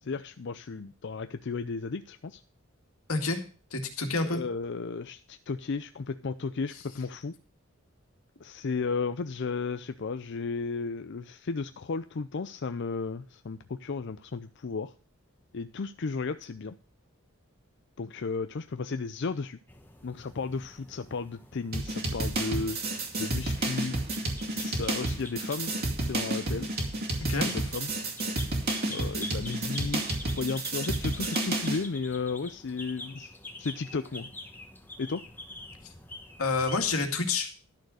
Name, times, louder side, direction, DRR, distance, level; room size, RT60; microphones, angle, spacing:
voice 1, 0.0-2.4 4.2-7.3 8.4-14.9 15.5-16.8 18.0-19.6 20.0-24.0 24.5-25.7 26.0-26.7 27.4-27.9 28.9-34.3 35.0-35.2, left 4 dB, 55° left, 10 dB, 0.5 m, -34 dB
voice 2, 3.1-3.4 3.7-4.4 27.3-27.6 36.4-37.5, left 3 dB, 85° left, 5 dB, 2.1 m, -28 dB
sound 1, 19.7-37.1, left 2 dB, 10° left, 1.3 m, -46 dB
sound 2, 21.7-31.8, right 2 dB, 45° right, 2.3 m, -31 dB
12.0 x 6.6 x 6.2 m, 0.38 s
head